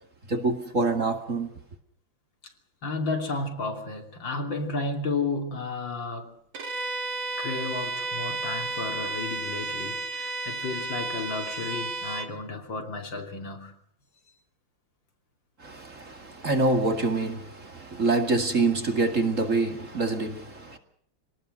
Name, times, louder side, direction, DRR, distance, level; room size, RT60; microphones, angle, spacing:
voice 1, 0.3-1.5 15.6-20.8, right 3 dB, 40° right, 2.6 m, -26 dB
voice 2, 2.8-6.4 7.4-13.8, left 3 dB, 70° left, 3.6 m, -32 dB
Bowed string instrument, 6.5-12.3, right 2 dB, 75° right, 2.8 m, -32 dB
25.5 x 19.0 x 6.6 m
omnidirectional pair, 2.2 m